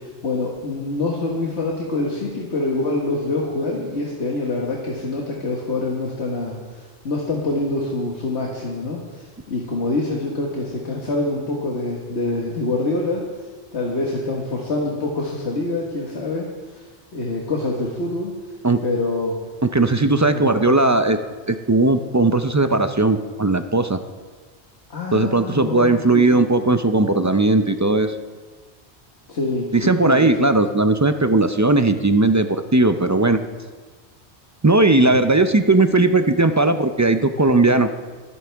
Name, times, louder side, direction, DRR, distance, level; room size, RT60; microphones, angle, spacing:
voice 1, 0.0-13.2 13.7-16.5 16.7-16.8 17.1-18.3 18.8-19.3 20.3-20.6 24.9-26.4 29.3-30.5 34.9-35.2, left 2 dB, 85° left, -2 dB, 1.8 m, -25 dB
voice 2, 19.7-21.2 21.5-24.0 25.1-28.2 29.7-33.4 34.6-37.9, right 2 dB, 30° right, 8 dB, 0.3 m, -17 dB
23.5 x 9.4 x 3.5 m, 1.4 s
omnidirectional pair, 1.1 m